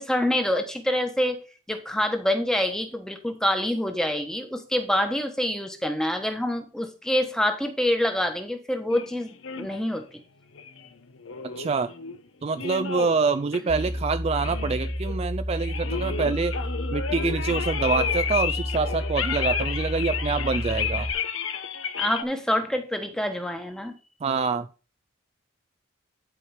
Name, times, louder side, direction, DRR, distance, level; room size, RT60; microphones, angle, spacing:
voice 1, 0.0-10.2 13.7-13.8 22.0-23.9, left 1 dB, 5° left, 6 dB, 1.2 m, -26 dB
sound 1, 8.9-9.8 10.5-12.2 12.5-13.2 13.5-14.1 14.3-15.2 15.5-22.2, left 7 dB, 75° left, 1.0 m, -31 dB
voice 2, 11.6-11.9 12.4-16.5 16.9-21.1 24.2-24.7, right 4 dB, 30° right, 10 dB, 0.3 m, -26 dB
sound 2, 13.7-21.1, equal, 10° right, 1.4 m, -31 dB
11.0 x 4.7 x 4.9 m, 0.34 s
head